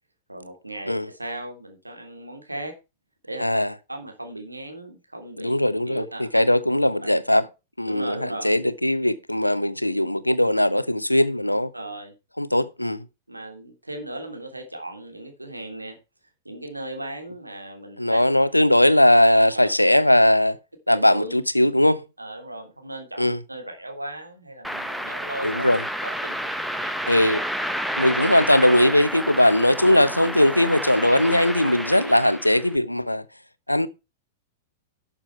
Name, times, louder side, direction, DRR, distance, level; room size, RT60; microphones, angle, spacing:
voice 1, 0.3-2.7 3.2-3.4 3.9-5.5 5.9-6.3 7.0-7.1 7.9-8.5 11.7-12.1 13.3-16.0 16.4-18.2 19.5-19.7 20.9-21.4 22.2-25.7 26.0-27.0 29.8-30.0, right 1 dB, 85° right, 2.9 m, -37 dB
voice 2, 3.4-3.7 5.4-7.5 7.8-11.7 12.4-13.0 18.0-20.6 20.9-22.0 23.2-23.4 25.4-25.8 27.0-27.4 28.0-33.2 33.7-33.9, left 1 dB, 90° left, 0.8 m, -19 dB
sound 1, 24.6-32.7, equal, ahead, 0.9 m, -30 dB
12.0 x 7.2 x 4.5 m
figure-of-eight pair, 100°, 0 cm